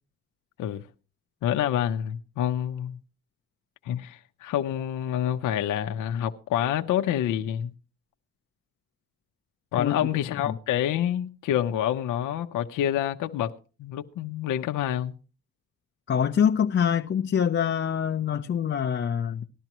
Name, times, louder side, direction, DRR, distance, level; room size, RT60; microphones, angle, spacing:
voice 1, 1.4-3.0 3.8-7.7 9.7-13.5 13.8-15.2, left 10 dB, 90° left, 0.8 m, -27 dB
voice 2, 16.1-19.4, left 8 dB, 40° left, 0.7 m, -25 dB
18.5 x 12.0 x 3.0 m
cardioid pair, 90°, 30 cm